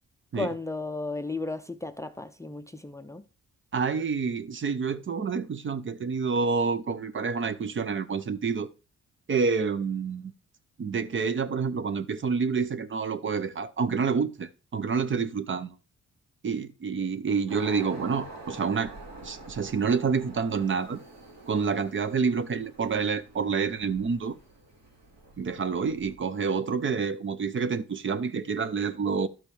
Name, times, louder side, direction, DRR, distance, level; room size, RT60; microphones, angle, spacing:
voice 1, 0.3-3.2, left 2 dB, 10° left, 0.5 m, -34 dB
voice 2, 3.7-8.7 9.3-10.3 10.8-15.7 16.4-18.9 19.2-21.0 21.5-24.4 25.4-29.3, right 5 dB, 40° right, 0.7 m, -28 dB
sound 1, 17.5-26.1, right 2 dB, 65° right, 2.8 m, -47 dB
12.5 x 5.9 x 3.3 m
cardioid pair, 105°, 30 cm